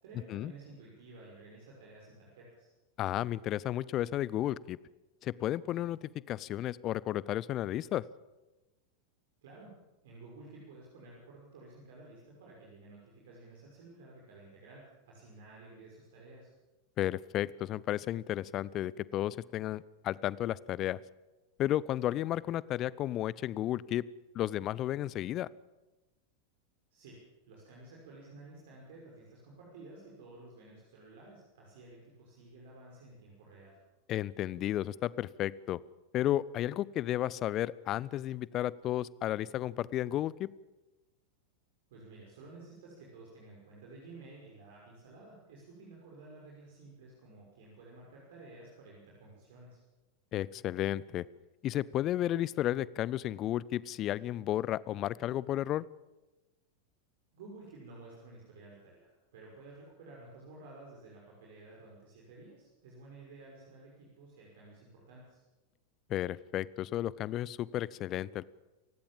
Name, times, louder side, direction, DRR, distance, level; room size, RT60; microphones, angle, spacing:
voice 1, 0.0-2.7 9.4-9.7 10.0-16.5 26.9-33.8 41.9-49.8 57.3-65.4, right 2 dB, 55° right, -3 dB, 6.0 m, -53 dB
voice 2, 3.0-4.8 5.2-8.0 17.0-21.0 21.6-24.0 24.3-25.5 34.1-35.8 36.1-40.5 50.3-51.3 51.6-55.8 66.1-68.4, left 13 dB, 35° left, 22 dB, 0.6 m, -33 dB
28.0 x 16.0 x 7.5 m, 1.1 s
figure-of-eight pair, 90°, 0 cm